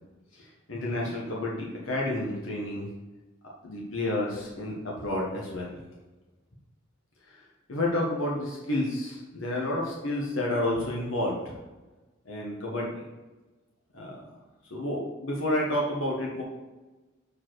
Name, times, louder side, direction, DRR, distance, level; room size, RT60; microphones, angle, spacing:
voice 1, 0.3-2.9 3.6-5.8 7.7-11.6 12.2-13.0 13.9-14.2 14.7-16.4, left 1 dB, 80° left, -3 dB, 1.4 m, -30 dB
7.3 x 4.5 x 4.6 m, 1.2 s
head